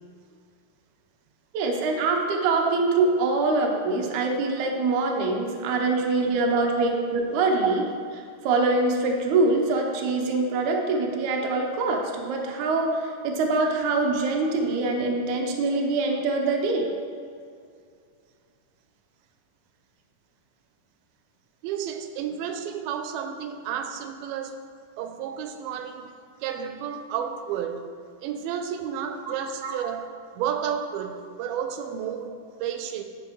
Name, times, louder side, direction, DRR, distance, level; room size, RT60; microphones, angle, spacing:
voice 1, 1.5-16.9 29.6-29.8, right 3 dB, 70° right, 1 dB, 1.9 m, -24 dB
voice 2, 21.6-24.6 25.0-26.1 26.4-27.9 28.2-30.1 30.4-33.0, right 8 dB, 90° right, 6 dB, 2.5 m, -31 dB
10.5 x 7.0 x 3.1 m, 2.2 s
omnidirectional pair, 4.3 m